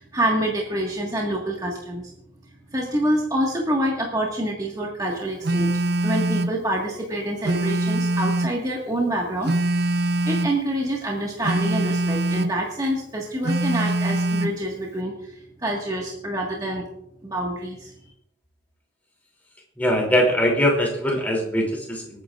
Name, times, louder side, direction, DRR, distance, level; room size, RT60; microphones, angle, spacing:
voice 1, 0.0-2.1 2.7-5.7 6.0-9.5 10.2-16.8 17.2-17.9, right 1 dB, 20° right, -2 dB, 1.6 m, -26 dB
Telephone, 5.4-6.6 7.4-8.6 9.4-10.6 11.4-12.6 13.4-14.6, right 2 dB, 55° right, 0.6 m, -23 dB
voice 2, 19.8-22.2, equal, 10° left, -1 dB, 2.9 m, -22 dB
26.5 x 9.2 x 2.5 m, 0.77 s
head